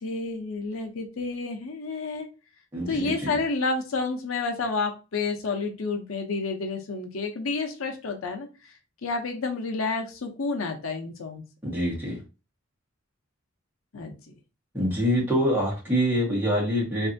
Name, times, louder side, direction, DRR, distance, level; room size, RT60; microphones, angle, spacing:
voice 1, 0.0-2.3 2.9-8.7 9.0-11.4 13.9-14.3, left 3 dB, 85° left, 5 dB, 0.7 m, -30 dB
voice 2, 2.7-3.1 11.6-12.2 14.7-17.1, equal, 10° right, -5 dB, 1.4 m, -25 dB
3.2 x 2.6 x 2.6 m, 0.30 s
head